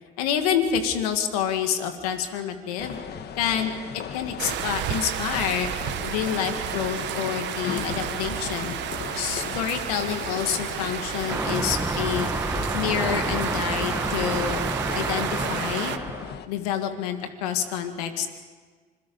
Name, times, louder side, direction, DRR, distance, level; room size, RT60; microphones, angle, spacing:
voice 1, 0.2-3.0 3.4-3.7 4.1-5.7 6.0-8.8 9.1-12.3 12.7-14.6 14.9-16.0 16.5-18.3, left 9 dB, 90° left, 7 dB, 1.8 m, -28 dB
sound 1, 2.8-16.5, left 7 dB, 60° left, 1.4 m, -37 dB
sound 2, 4.4-16.0, right 13 dB, 70° right, 1.0 m, -32 dB
sound 3, 11.3-16.3, right 2 dB, 10° right, 1.1 m, -29 dB
26.0 x 22.0 x 5.4 m, 1.5 s
supercardioid pair, 65°, 19 cm